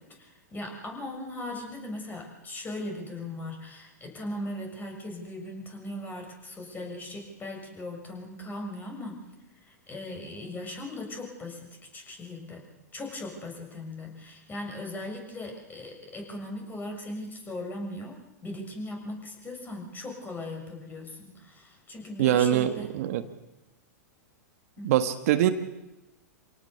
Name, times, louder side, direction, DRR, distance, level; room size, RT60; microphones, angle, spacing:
voice 1, 0.1-9.2 9.6-11.7 11.9-12.6 12.9-18.2 18.4-22.9 24.8-25.0, left 1 dB, 20° left, 2 dB, 6.9 m, -38 dB
voice 2, 22.2-23.2 24.8-25.5, right 12 dB, 60° right, 9 dB, 1.5 m, -23 dB
26.5 x 18.0 x 7.0 m, 0.99 s
hypercardioid pair, 105°, 9 cm